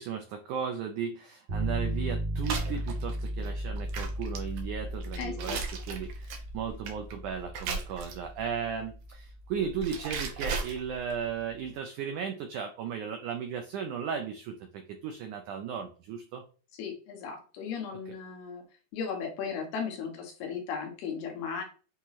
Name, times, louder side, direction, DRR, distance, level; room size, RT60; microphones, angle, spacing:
voice 1, 0.0-16.4, right 7 dB, 85° right, 4 dB, 1.8 m, -36 dB
sound 1, 1.5-11.4, right 1 dB, 50° right, 2.5 m, -36 dB
sound 2, 2.4-8.4 9.4-11.2, right 5 dB, 65° right, 1.9 m, -37 dB
voice 2, 5.2-5.6 16.8-18.6 18.9-21.6, left 6 dB, 85° left, 3 dB, 3.3 m, -36 dB
8.2 x 3.1 x 4.1 m, 0.37 s
omnidirectional pair, 4.5 m